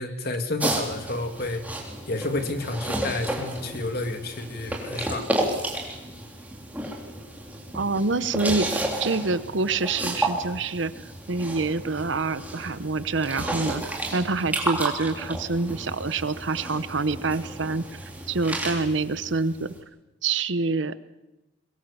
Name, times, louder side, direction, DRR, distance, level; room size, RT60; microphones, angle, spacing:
voice 1, 0.0-1.7 2.1-5.3, left 2 dB, 55° left, 6 dB, 2.5 m, -30 dB
sound 1, 0.6-19.8, right 1 dB, 10° right, 3.4 m, -32 dB
voice 2, 7.7-10.9 11.3-18.0 18.3-19.7 20.2-21.0, right 3 dB, 75° right, 14 dB, 0.9 m, -26 dB
23.0 x 21.0 x 7.1 m, 0.99 s
head